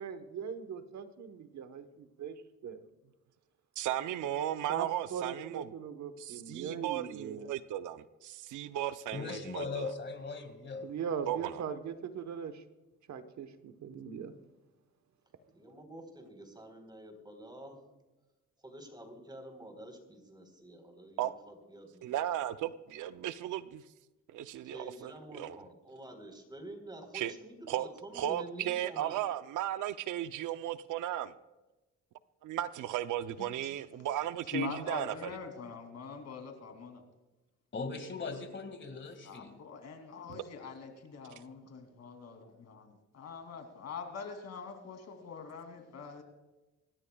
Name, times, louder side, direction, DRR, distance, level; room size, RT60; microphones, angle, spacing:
voice 1, 0.0-2.8 4.7-7.5 10.8-12.6 13.1-14.3, right 7 dB, 65° right, 10 dB, 1.2 m, -40 dB
voice 2, 3.8-5.7 6.2-9.9 11.3-11.6 21.2-21.3 22.0-23.8 24.3-25.1 25.4-25.6 27.1-27.3 27.7-27.9 28.1-31.3 32.4-35.3, right 12 dB, 80° right, 12 dB, 0.7 m, -35 dB
voice 3, 9.1-10.9 37.7-39.6, left 4 dB, 40° left, 8 dB, 2.1 m, -39 dB
voice 4, 15.5-17.8 18.6-22.2 24.6-29.2, right 1 dB, 15° right, 4 dB, 4.1 m, -49 dB
voice 5, 34.5-37.0 39.2-46.2, left 5 dB, 60° left, 5 dB, 2.9 m, -43 dB
25.5 x 13.5 x 2.4 m, 1.1 s
cardioid pair, 90°, 30 cm